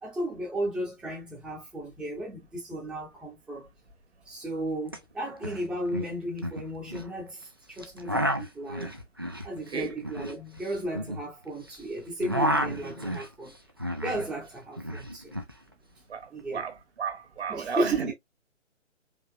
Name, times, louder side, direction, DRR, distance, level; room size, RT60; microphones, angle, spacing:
voice 1, 0.0-3.7 4.3-8.9 9.4-13.5 14.0-15.3 16.3-16.6 17.5-18.1, right 1 dB, ahead, 0.8 m, -34 dB
sound 1, 4.9-5.0 5.2-5.6 5.9-7.1 7.8-11.7 12.0-14.3 14.6-15.5, equal, 20° right, 0.3 m, -31 dB
voice 2, 16.1-18.1, right 6 dB, 55° right, 1.5 m, -33 dB
4.8 x 3.0 x 2.6 m
figure-of-eight pair, 130°, 37 cm